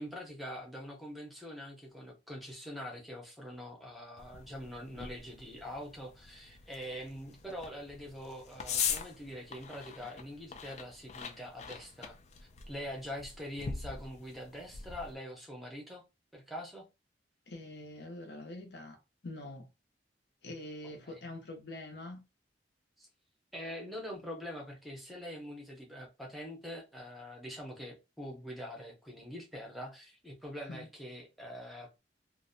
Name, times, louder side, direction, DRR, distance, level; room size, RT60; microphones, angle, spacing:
voice 1, 0.0-12.2 12.7-16.0 16.3-16.8 21.1-21.2 23.0-23.1 23.5-32.0, equal, ahead, 0.7 m, -44 dB
sound 1, 4.2-15.1, left 7 dB, 40° left, 0.3 m, -42 dB
voice 2, 17.5-19.0 19.2-19.7 20.4-22.2 30.7-30.9, left 1 dB, 65° left, 0.8 m, -44 dB
2.6 x 2.1 x 2.6 m
head